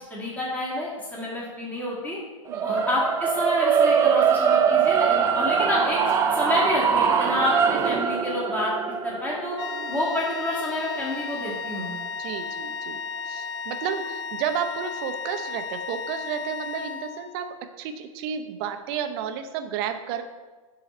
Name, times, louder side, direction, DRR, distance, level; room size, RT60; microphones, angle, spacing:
voice 1, 0.1-2.2 2.6-8.7 9.0-9.6 9.9-11.9, left 1 dB, 10° left, -6 dB, 1.9 m, -28 dB
sound 1, 2.5-12.7, right 7 dB, 15° right, 0.4 m, -23 dB
voice 2, 2.5-2.8 9.6-10.0 12.2-17.5 17.8-20.2, right 8 dB, 45° right, 8 dB, 0.7 m, -32 dB
sound 2, 9.6-17.4, left 5 dB, 55° left, 0.6 m, -34 dB
9.6 x 3.9 x 4.3 m, 1.3 s
hypercardioid pair, 125°, 18 cm